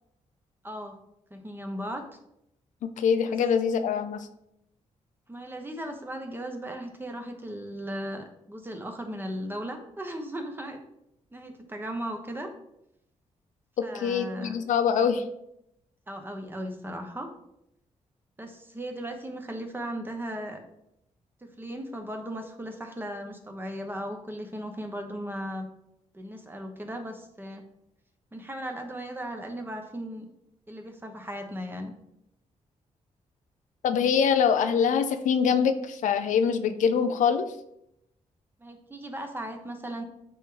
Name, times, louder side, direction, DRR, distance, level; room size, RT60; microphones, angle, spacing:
voice 1, 0.6-1.0 1.3-2.0 5.3-10.8 11.3-12.5 13.8-14.6 16.1-17.3 18.4-20.6 21.4-25.7 26.1-27.6 28.3-30.3 30.7-31.9 38.6-40.0, equal, 15° right, 4 dB, 1.1 m, -37 dB
voice 2, 2.8-4.3 13.8-15.2 33.8-37.5, left 7 dB, 85° left, 9 dB, 0.6 m, -24 dB
9.0 x 3.2 x 3.8 m, 0.79 s
cardioid pair, 95°, 13 cm